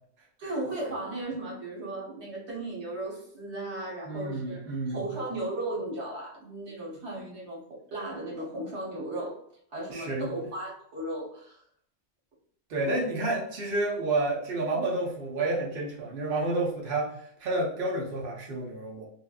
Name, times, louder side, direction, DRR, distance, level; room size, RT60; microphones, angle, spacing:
voice 1, 0.4-9.4 9.7-11.6 12.8-13.0, right 2 dB, 80° right, -4 dB, 1.3 m, -36 dB
voice 2, 4.1-5.2 9.9-10.3 12.7-19.0, right 2 dB, 60° right, -3 dB, 0.8 m, -30 dB
3.2 x 2.2 x 2.3 m, 0.66 s
omnidirectional pair, 1.1 m